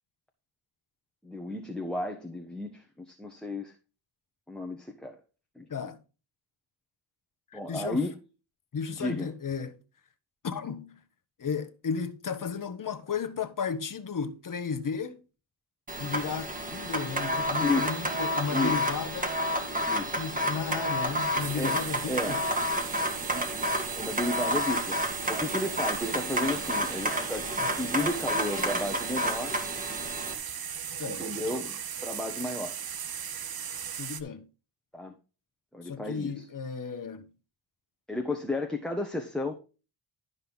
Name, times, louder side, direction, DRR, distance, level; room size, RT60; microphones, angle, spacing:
voice 1, 1.2-3.7 4.5-5.2 5.6-5.7 7.5-8.1 9.0-9.3 17.6-18.0 18.5-18.8 19.9-20.3 21.5-21.8 22.0-22.4 23.3-23.5 23.9-25.0 25.3-29.5 31.0-32.8 34.9-35.1 35.7-36.4 38.1-39.5, left 2 dB, ahead, 1.3 m, -33 dB
voice 2, 7.5-8.1 8.7-9.8 10.4-11.0 11.4-15.2 16.0-19.3 20.2-22.4 27.6-27.8 31.0-31.2 34.0-34.5 35.8-37.3, left 6 dB, 45° left, 1.4 m, -34 dB
sound 1, 15.9-30.3, equal, 15° right, 2.2 m, -30 dB
sound 2, 21.0-34.2, right 8 dB, 50° right, 1.0 m, -38 dB
12.0 x 5.3 x 4.0 m
cardioid pair, 85°, 46 cm